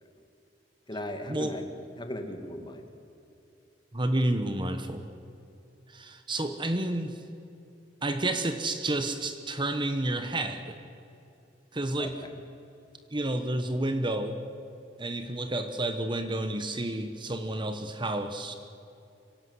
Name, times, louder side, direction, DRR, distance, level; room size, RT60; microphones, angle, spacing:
voice 1, 0.9-1.7 2.0-2.9 12.0-12.3, left 1 dB, 25° left, 5 dB, 2.2 m, -37 dB
voice 2, 3.9-5.0 5.9-7.2 8.0-10.7 11.7-12.1 13.1-14.4 15.0-18.5, right 1 dB, 25° right, 8 dB, 1.2 m, -30 dB
25.5 x 17.0 x 8.0 m, 2.7 s
head